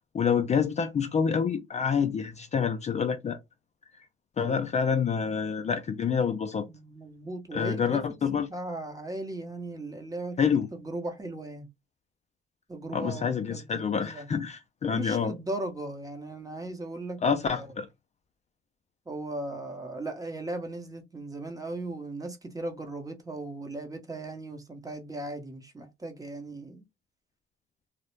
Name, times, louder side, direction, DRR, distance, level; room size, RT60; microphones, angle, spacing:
voice 1, 0.1-3.4 4.4-6.7 7.5-8.5 10.4-10.7 12.9-15.3 17.2-17.9, left 6 dB, 35° left, 0.4 m, -27 dB
voice 2, 6.7-8.0 8.5-11.7 12.7-14.3 14.9-17.2 17.5-17.7 19.1-26.8, right 2 dB, 15° right, 0.7 m, -37 dB
2.3 x 2.0 x 3.0 m
cardioid pair, 90°, 20 cm